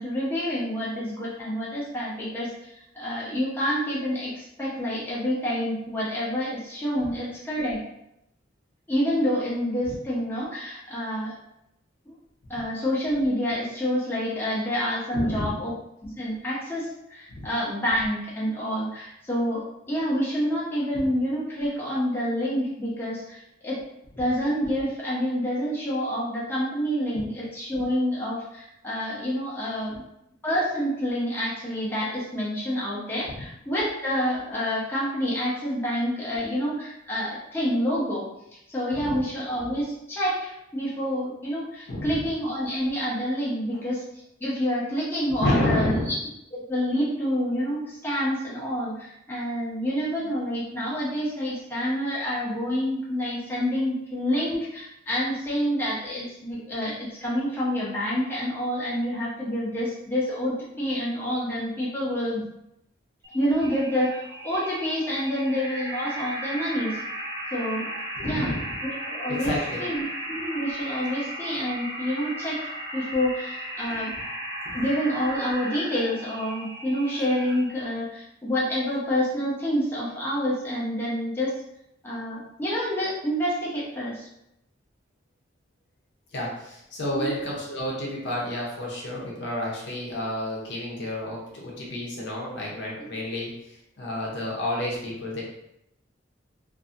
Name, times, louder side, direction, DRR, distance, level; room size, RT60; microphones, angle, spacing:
voice 1, 0.0-2.5 2.9-7.8 8.9-11.4 12.1-12.2 12.5-15.7 16.0-23.8 24.2-30.0 30.4-38.3 38.7-44.0 44.4-46.1 46.5-62.4 63.3-67.0 67.5-67.9 68.2-69.5 69.8-72.6 72.9-74.1 74.7-81.5 82.0-84.3 87.1-87.3 93.1-93.2, equal, 10° left, -8 dB, 0.7 m, -28 dB
voice 2, 15.1-15.5 17.3-17.5 20.9-21.0 27.1-27.2 33.2-33.4 38.9-39.2 41.9-42.2 45.4-46.1 68.1-68.6 69.4-69.8 74.6-74.8 86.3-93.5 94.0-95.4, left 1 dB, 65° left, -4 dB, 0.7 m, -30 dB
sound 1, 63.2-77.8, right 1 dB, 20° right, 0.5 m, -36 dB
2.6 x 2.6 x 2.5 m, 0.82 s
head